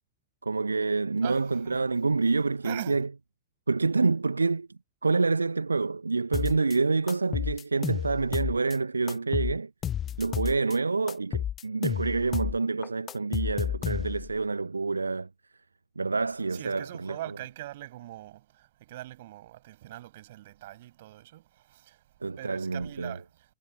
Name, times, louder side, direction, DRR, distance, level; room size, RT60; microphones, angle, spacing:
voice 1, 0.4-3.1 3.7-4.7 5.0-9.7 10.2-15.3 16.0-17.2 22.2-23.2, right 4 dB, 80° right, 1.2 m, -27 dB
voice 2, 1.2-1.8 2.6-3.0 16.5-18.3 18.9-21.2 22.4-23.2, right 15 dB, 55° right, 6.8 m, -41 dB
sound 1, 6.3-6.8 7.1-8.8 9.1-10.8 11.1-12.6 12.8-14.3, left 10 dB, 25° left, 0.5 m, -31 dB
figure-of-eight pair, 90°, 0 cm